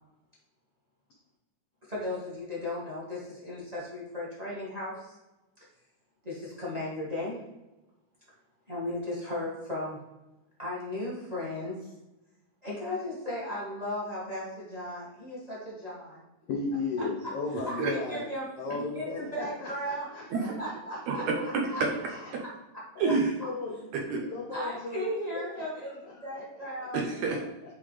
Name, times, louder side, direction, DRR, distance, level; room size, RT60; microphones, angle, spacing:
voice 1, 1.9-5.2 6.2-7.4 8.7-10.0 10.6-11.9 12.6-16.3 17.0-17.1 17.5-18.5 18.9-20.1 20.3-21.2 21.7-21.8 24.5-27.0, left 1 dB, 30° right, -7 dB, 0.7 m, -36 dB
voice 2, 16.5-18.3 18.6-21.2 22.1-22.3 23.0-23.9 24.3-25.1 25.9-26.9, left 3 dB, 80° left, -1 dB, 1.3 m, -36 dB
voice 3, 17.5-17.9 18.7-18.8 20.3-20.5 21.1-21.9 22.3-22.4 23.0-23.3 23.9-24.3 26.9-27.4, right 4 dB, 75° right, 1 dB, 1.7 m, -29 dB
8.8 x 3.5 x 3.2 m, 1.0 s
omnidirectional pair, 3.7 m